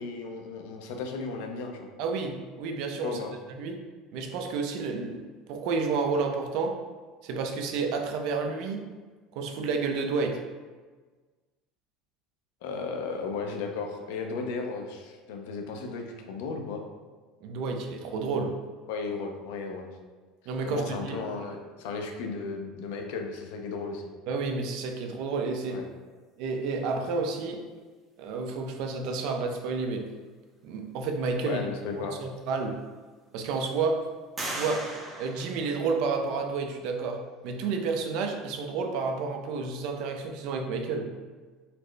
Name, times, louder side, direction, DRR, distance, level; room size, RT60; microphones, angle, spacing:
voice 1, 0.0-1.9 3.0-3.3 12.6-16.8 18.9-19.9 20.6-24.1 25.7-25.9 31.4-32.2, left 4 dB, 80° left, 3 dB, 0.5 m, -35 dB
voice 2, 2.0-3.2 3.5-3.8 4.1-5.2 5.5-6.8 7.2-8.8 9.4-10.4 17.4-18.5 20.5-21.2 24.3-25.8 26.4-27.7 28.2-30.1 30.6-31.7 32.0-32.8 33.3-34.1 34.5-34.9 35.2-41.1, right 4 dB, 65° right, 4 dB, 0.4 m, -30 dB
sound 1, 32.1-32.2 32.8-33.4 34.4-36.3, right 1 dB, 20° right, 0.6 m, -38 dB
4.1 x 2.0 x 3.2 m, 1.4 s
cardioid pair, 145°, 0 cm